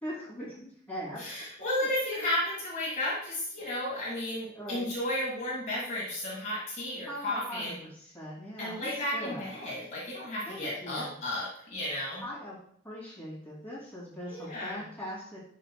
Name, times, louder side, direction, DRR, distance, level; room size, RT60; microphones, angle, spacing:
voice 1, 0.0-1.3 4.5-4.9 7.0-9.5 10.5-11.2 12.2-12.6 12.8-15.4, equal, 10° left, -8 dB, 2.6 m, -41 dB
voice 2, 1.2-7.7 8.6-12.2 14.3-14.8, left 1 dB, 40° left, -6 dB, 1.7 m, -33 dB
10.0 x 5.2 x 2.2 m, 0.64 s
head